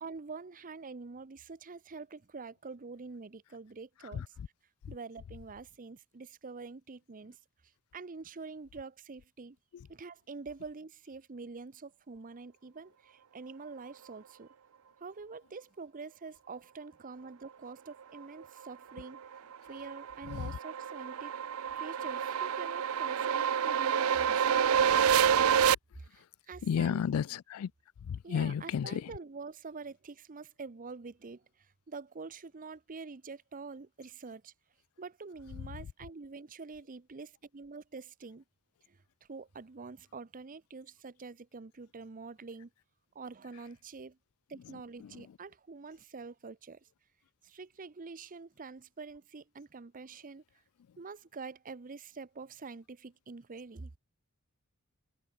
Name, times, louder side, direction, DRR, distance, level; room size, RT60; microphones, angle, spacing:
voice 1, 0.0-4.3 4.9-7.3 7.9-9.6 9.9-14.5 15.0-19.2 19.7-21.3 21.7-24.5 26.0-27.0 28.2-31.4 31.9-34.5 35.0-38.4 38.9-39.0 39.3-42.7 43.1-44.2 44.5-46.8 47.4-50.4 51.0-53.9, right 4 dB, 40° right, 0.7 m, -46 dB
sound 1, 19.2-25.7, right 8 dB, 75° right, 0.5 m, -28 dB
voice 2, 26.6-27.7 28.1-29.0, left 7 dB, 80° left, 0.4 m, -32 dB
head